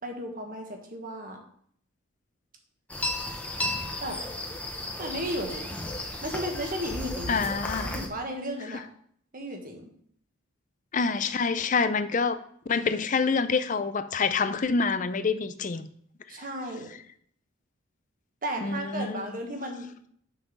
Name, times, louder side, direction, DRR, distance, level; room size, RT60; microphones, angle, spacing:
voice 1, 0.0-1.4 4.0-4.2 5.0-5.8 6.2-7.4 7.8-8.8 9.3-9.9 16.3-16.9 18.4-19.9, equal, 40° right, 1.4 m, -34 dB
sound 1, 2.9-8.1, left 1 dB, 5° left, 0.8 m, -34 dB
voice 2, 7.3-7.9 8.7-8.8 10.9-12.4 12.7-15.9 18.6-19.2, left 4 dB, 35° left, 0.5 m, -27 dB
6.2 x 5.9 x 5.3 m
head